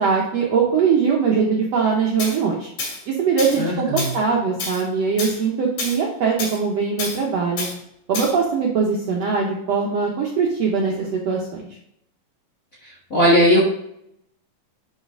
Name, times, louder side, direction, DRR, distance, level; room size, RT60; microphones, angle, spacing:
voice 1, 0.0-2.7 3.1-7.7 8.1-11.6, right 5 dB, 70° right, -1 dB, 1.6 m, -21 dB
Tools, 2.2-2.4 2.8-3.0 3.4-3.6 4.0-4.2 4.6-4.8 5.2-5.4 5.8-6.0 6.4-6.6 7.0-7.2 7.6-7.7 8.1-8.3, left 3 dB, 70° left, 4.0 m, -28 dB
voice 2, 3.6-4.1 13.1-13.6, equal, 40° left, -4 dB, 1.2 m, -17 dB
10.5 x 4.1 x 3.7 m, 0.75 s
omnidirectional pair, 4.0 m